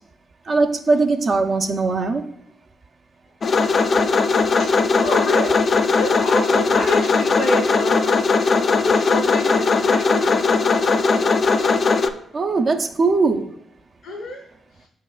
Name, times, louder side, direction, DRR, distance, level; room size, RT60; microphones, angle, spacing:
voice 1, 0.5-2.3 12.3-13.5, right 3 dB, 50° right, 4 dB, 0.5 m, -20 dB
sound 1, 3.4-12.1, left 4 dB, 50° left, 0.3 m, -18 dB
voice 2, 5.0-5.6 6.0-8.2 8.8-10.3 14.0-14.4, left 1 dB, 75° left, -2 dB, 0.8 m, -27 dB
4.9 x 4.5 x 2.4 m, 0.73 s
hypercardioid pair, 45°, 0 cm